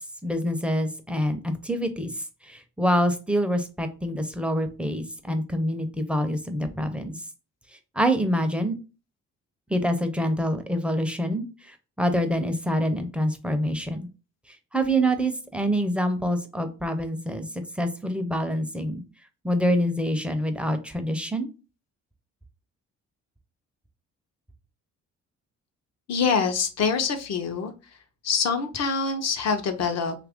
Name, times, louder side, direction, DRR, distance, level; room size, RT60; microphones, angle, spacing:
voice 1, 0.2-2.1 2.4-7.2 7.9-8.7 9.7-14.1 14.7-17.5 17.8-19.0 19.4-21.5, equal, 5° right, 7 dB, 0.5 m, -26 dB
voice 2, 26.1-27.7 28.2-30.1, left 5 dB, 60° left, 7 dB, 0.7 m, -25 dB
2.9 x 2.5 x 3.5 m, 0.32 s
cardioid pair, 90°, 30 cm